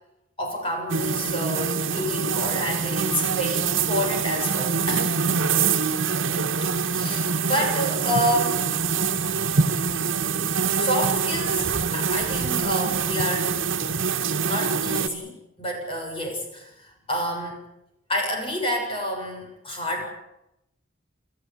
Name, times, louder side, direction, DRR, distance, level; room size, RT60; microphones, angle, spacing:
voice 1, 0.4-5.4 6.7-8.6 9.1-9.7 10.8-13.5 14.4-17.6 18.1-20.1, equal, 25° left, 1 dB, 7.1 m, -29 dB
sound 1, 0.9-15.1, right 5 dB, 80° right, 1.7 m, -25 dB
27.5 x 13.5 x 10.0 m, 0.86 s
head